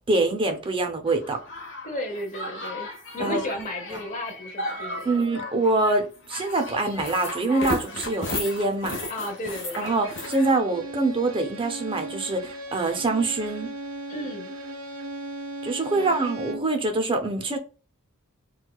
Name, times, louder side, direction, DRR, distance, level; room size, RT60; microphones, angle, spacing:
voice 1, 0.1-1.4 3.2-3.4 5.0-8.9 9.8-13.7 15.6-17.6, right 2 dB, 25° right, 0.5 m, -25 dB
sound 1, 1.1-10.5, left 1 dB, 60° left, 1.0 m, -35 dB
voice 2, 1.8-2.9 3.1-5.2 9.1-10.0 14.1-14.5 15.9-16.2, left 1 dB, 35° left, 0.8 m, -34 dB
Bowed string instrument, 9.8-16.8, right 1 dB, 70° right, 0.6 m, -37 dB
4.5 x 2.3 x 2.2 m
head